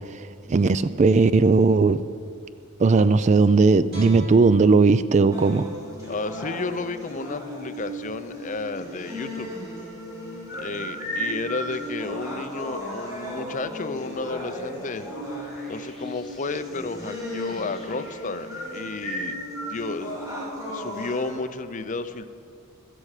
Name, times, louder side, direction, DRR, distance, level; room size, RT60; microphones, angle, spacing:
voice 1, 0.5-2.0 2.8-5.7, right 4 dB, 35° right, 14 dB, 0.3 m, -17 dB
Guitar, 3.9-7.0 7.5-7.6, right 2 dB, 50° right, 3.6 m, -40 dB
sound 1, 5.3-21.3, equal, 15° right, 3.0 m, -35 dB
voice 2, 6.1-9.6 10.6-15.1 15.7-19.4 19.7-20.1 20.7-22.3, left 3 dB, 35° left, 11 dB, 0.6 m, -32 dB
sound 2, 12.8-18.5, equal, ahead, 2.6 m, -44 dB
17.5 x 13.0 x 4.9 m, 2.3 s
head